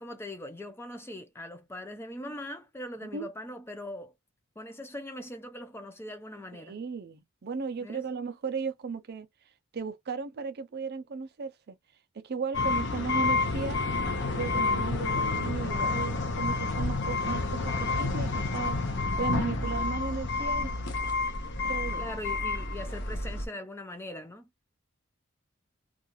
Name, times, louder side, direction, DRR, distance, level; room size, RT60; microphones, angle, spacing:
voice 1, 0.0-4.1 4.6-6.8 7.8-8.0 22.0-24.5, left 1 dB, 10° left, 0.4 m, -41 dB
voice 2, 6.5-9.3 9.7-11.8 12.1-13.8 14.3-20.7 21.6-22.0, right 5 dB, 50° right, 0.5 m, -36 dB
sound 1, 12.5-23.5, left 3 dB, 55° left, 0.6 m, -29 dB
2.5 x 2.3 x 2.9 m
head